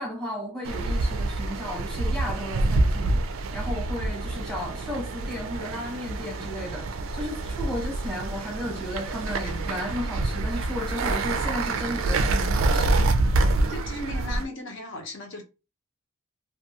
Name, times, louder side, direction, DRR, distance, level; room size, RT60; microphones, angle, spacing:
voice 1, 0.0-13.1, equal, 5° left, 1.0 m, -34 dB
sound 1, 0.7-14.4, right 2 dB, 70° right, 0.4 m, -27 dB
voice 2, 13.7-15.4, left 1 dB, 60° left, 0.9 m, -36 dB
2.4 x 2.3 x 2.8 m
head